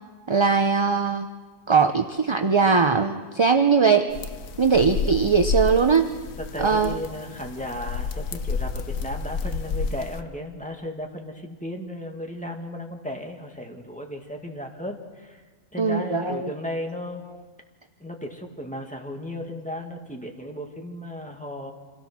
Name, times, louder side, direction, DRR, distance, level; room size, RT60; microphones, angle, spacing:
voice 1, 0.3-1.3 1.7-4.1 4.6-6.1 6.6-7.0 15.8-16.4, right 5 dB, 30° right, 6 dB, 0.6 m, -20 dB
sound 1, 4.1-10.2, left 5 dB, 85° left, 1.4 m, -30 dB
voice 2, 6.4-15.4 15.7-17.2 18.0-21.7, left 1 dB, 5° left, 2 dB, 2.0 m, -35 dB
27.0 x 17.0 x 6.1 m, 1.4 s
omnidirectional pair, 1.4 m